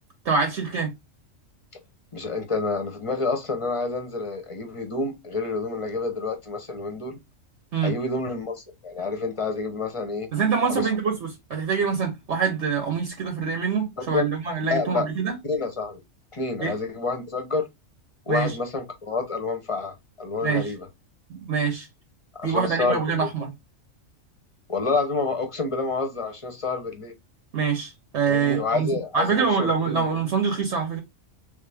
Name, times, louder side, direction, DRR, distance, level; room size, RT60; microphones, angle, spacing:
voice 1, 0.2-0.9 7.7-7.9 10.3-15.3 16.6-16.7 18.3-18.5 20.4-20.7 21.3-21.9 22.4-23.5 27.5-28.9 29.1-31.0, right 5 dB, 65° right, 1.1 m, -25 dB
voice 2, 2.1-7.2 7.8-10.3 10.7-10.9 14.0-14.3 14.7-15.1 15.4-16.0 16.3-17.7 18.3-20.9 22.4-23.3 24.7-27.1 28.3-30.0, left 3 dB, 30° left, 0.7 m, -28 dB
3.4 x 2.6 x 3.4 m
omnidirectional pair, 1.4 m